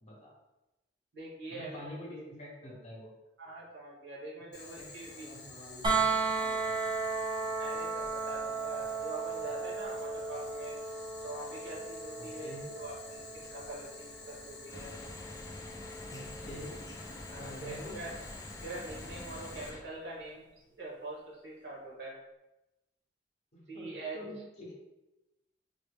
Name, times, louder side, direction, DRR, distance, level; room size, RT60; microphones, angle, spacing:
voice 1, 0.0-0.3 1.5-3.1 4.4-6.9 12.2-12.7 16.1-16.8 17.4-18.0 23.5-24.7, equal, 40° left, -3 dB, 0.9 m, -47 dB
voice 2, 1.1-2.2 3.4-5.3 7.6-10.8 11.2-15.0 17.3-18.1 18.6-20.5 20.8-22.2 23.7-24.2, right 2 dB, 75° right, -5 dB, 1.3 m, -44 dB
Boiling, 4.5-19.7, left 3 dB, 65° left, 0.7 m, -50 dB
sound 1, 5.8-17.7 19.6-19.7, right 4 dB, 25° right, 0.6 m, -36 dB
sound 2, 14.7-19.8, left 1 dB, 20° left, 0.4 m, -46 dB
4.0 x 2.0 x 3.4 m, 0.96 s
head